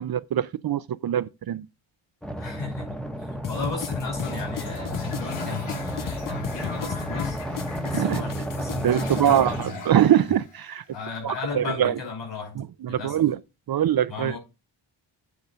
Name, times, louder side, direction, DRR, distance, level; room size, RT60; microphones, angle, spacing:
voice 1, 0.0-1.7 7.9-8.2 8.8-10.8 11.2-11.9 12.6-13.4 13.7-14.4, right 10 dB, 50° right, 0.5 m, -23 dB
sound 1, 2.2-9.6, equal, ahead, 1.0 m, -32 dB
voice 2, 2.4-7.4 7.8-9.8 10.9-12.6 12.9-13.2 14.1-14.4, left 4 dB, 65° left, 5.1 m, -35 dB
sound 2, 3.4-9.4, left 9 dB, 45° left, 0.7 m, -36 dB
Toilet flush, 4.2-11.1, left 3 dB, 85° left, 2.9 m, -40 dB
9.5 x 3.8 x 5.5 m
cardioid pair, 100°, 47 cm